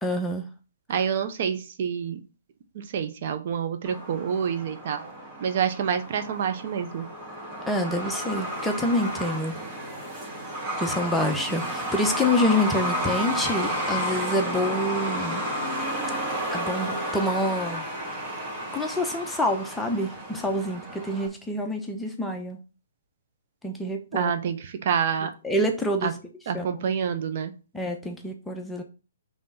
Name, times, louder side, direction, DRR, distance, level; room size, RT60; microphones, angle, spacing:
voice 1, 0.0-0.5 7.7-9.6 10.8-15.4 16.5-17.8 18.7-22.6 23.6-24.3 25.4-26.2 26.5-26.7 27.7-28.8, left 1 dB, 5° left, 3 dB, 0.9 m, -27 dB
voice 2, 0.9-2.2 2.7-5.1 5.4-7.1 24.1-25.3 26.0-26.1 26.5-27.5, right 7 dB, 50° right, 8 dB, 0.9 m, -27 dB
Truck, 3.8-21.3, equal, 30° right, 2.1 m, -32 dB
5.3 x 3.5 x 5.6 m, 0.33 s
hypercardioid pair, 140°, 0 cm